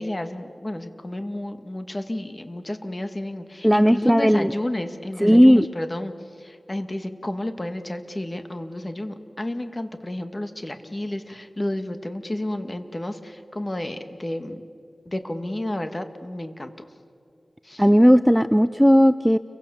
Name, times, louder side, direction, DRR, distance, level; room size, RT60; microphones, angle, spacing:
voice 1, 0.0-6.1 6.4-14.6 15.1-16.9 17.6-17.8, left 1 dB, 30° left, 8 dB, 2.1 m, -31 dB
voice 2, 3.6-4.5 5.2-5.7 17.8-19.4, equal, ahead, 12 dB, 0.6 m, -15 dB
30.0 x 24.0 x 7.3 m, 2.4 s
wide cardioid pair, 60°, 0 cm